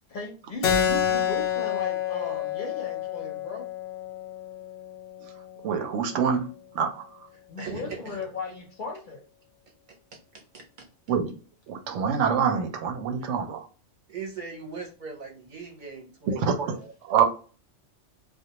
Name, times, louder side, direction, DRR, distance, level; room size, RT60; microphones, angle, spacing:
voice 1, 0.1-3.7 7.5-9.2, left 3 dB, 55° left, 0.6 m, -37 dB
Keyboard (musical), 0.6-5.7, left 9 dB, 90° left, 0.9 m, -29 dB
voice 2, 5.6-6.5 6.7-7.2 11.1-11.4 11.7-13.7 16.3-17.2, right 7 dB, 90° right, 0.9 m, -26 dB
voice 3, 7.3-8.2 9.9-10.9 14.1-16.9, right 5 dB, 50° right, 0.7 m, -40 dB
2.3 x 2.1 x 2.8 m
omnidirectional pair, 1.2 m